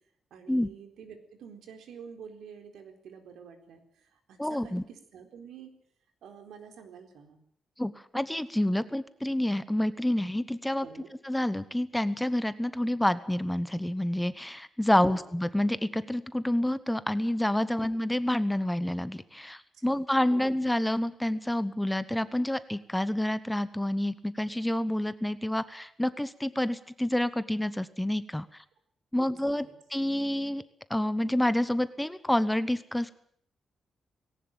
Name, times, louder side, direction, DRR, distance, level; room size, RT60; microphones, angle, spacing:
voice 1, 0.3-5.7 6.2-7.4 10.8-11.1 15.1-15.2 17.7-17.8 19.7-20.0 20.3-20.5 29.1-29.7, right 7 dB, 85° right, 6 dB, 4.1 m, -48 dB
voice 2, 4.4-4.8 7.8-10.9 11.2-28.5 29.1-30.6 30.9-33.1, left 1 dB, 5° left, 14 dB, 1.0 m, -28 dB
19.5 x 17.5 x 9.0 m, 0.64 s
wide cardioid pair, 150°, 0 cm